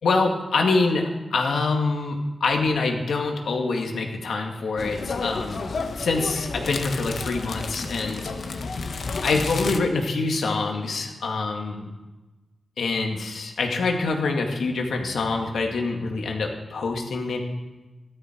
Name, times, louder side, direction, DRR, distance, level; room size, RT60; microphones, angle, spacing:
voice 1, 0.0-5.6 6.0-8.7 9.2-11.9 12.8-17.4, left 3 dB, 90° left, 2 dB, 2.0 m, -25 dB
sound 1, 4.8-9.8, left 4 dB, 60° left, 1.0 m, -31 dB
15.0 x 12.0 x 4.6 m, 1.1 s
wide cardioid pair, 145°, 0 cm